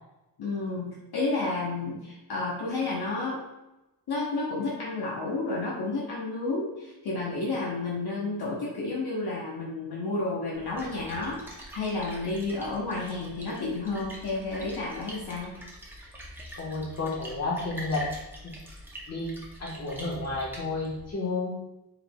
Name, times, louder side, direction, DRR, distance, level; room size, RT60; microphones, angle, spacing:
voice 1, 0.4-3.4 4.1-15.5, left 3 dB, 65° left, -4 dB, 0.8 m, -31 dB
Splash splatter, 10.5-21.1, equal, 5° right, 0.7 m, -45 dB
voice 2, 16.6-18.1 18.4-18.5 19.1-21.6, left 3 dB, 40° left, -4 dB, 1.2 m, -31 dB
4.6 x 3.6 x 2.2 m, 0.96 s
wide cardioid pair, 155°, 41 cm